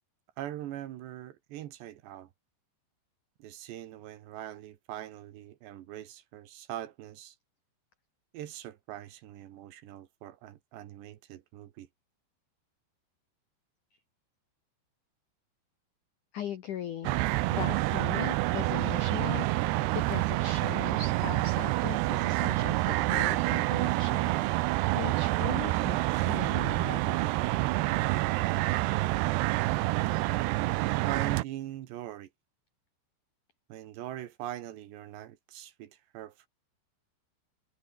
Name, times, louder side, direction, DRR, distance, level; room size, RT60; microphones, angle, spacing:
voice 1, 0.4-2.3 3.4-7.4 8.3-11.9 31.1-32.3 33.7-36.5, right 13 dB, 70° right, 3.3 m, -42 dB
voice 2, 16.3-17.2 17.5-27.3 30.0-30.2, left 9 dB, 75° left, 1.8 m, -39 dB
sound 1, 17.0-31.4, right 19 dB, 85° right, 2.4 m, -28 dB
omnidirectional pair, 5.6 m